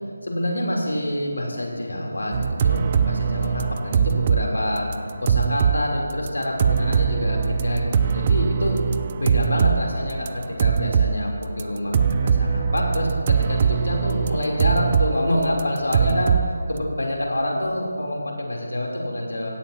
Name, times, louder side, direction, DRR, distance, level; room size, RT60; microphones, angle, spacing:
voice 1, 0.2-2.4 2.6-4.9 5.2-8.8 9.2-16.3 16.7-19.5, left 1 dB, 85° left, -2 dB, 3.4 m, -26 dB
sound 1, 2.3-4.5 4.8-5.8 6.1-6.3 6.6-9.8 10.1-11.2 11.6-11.7 11.9-15.2 15.4-16.5, right 7 dB, 30° right, 0.4 m, -21 dB
16.5 x 14.5 x 2.9 m, 2.1 s
figure-of-eight pair, 165°, 0 cm